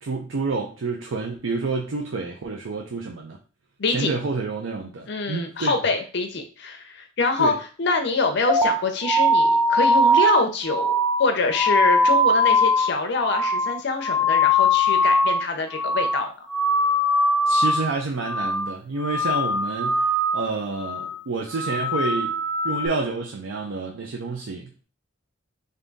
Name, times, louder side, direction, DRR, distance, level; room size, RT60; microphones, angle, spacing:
voice 1, 0.0-3.4 3.9-5.7 7.4-7.6 17.5-22.4 22.6-24.8, right 3 dB, 80° right, 1 dB, 0.5 m, -29 dB
voice 2, 5.1-10.9 11.2-16.3, left 3 dB, 60° left, 5 dB, 0.6 m, -25 dB
sound 1, 8.5-15.5 15.7-16.2 16.5-18.0 18.3-18.7 19.0-20.5 20.8-21.2 21.5-22.9, left 1 dB, 5° left, 0.3 m, -21 dB
3.5 x 2.7 x 3.9 m, 0.36 s
head